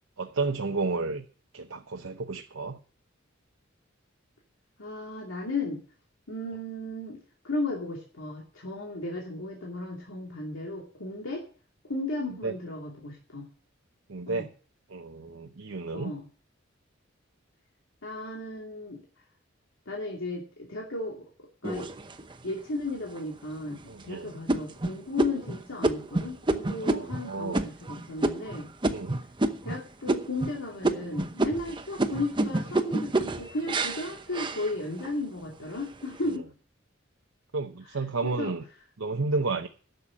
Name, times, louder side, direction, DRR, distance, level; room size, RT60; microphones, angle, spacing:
voice 1, 0.2-1.2 1.5-2.8 12.4-12.5 14.1-14.5 14.9-16.1 23.9-24.4 26.8-27.6 28.9-29.2 37.5-38.6 39.0-39.7, right 3 dB, 85° right, 0.9 m, -31 dB
voice 2, 4.8-5.8 6.3-11.4 11.8-13.5 14.3-14.5 15.9-16.3 18.0-19.2 19.9-21.9 22.4-23.8 24.0-28.7 29.6-36.5 37.8-38.5, left 2 dB, 85° left, 2.6 m, -35 dB
sound 1, 21.6-22.5 23.1-23.2 23.7-24.0 24.5-29.8 30.1-30.6 30.8-35.2 35.6-36.2, right 2 dB, 25° right, 0.8 m, -29 dB
11.5 x 6.8 x 8.5 m
head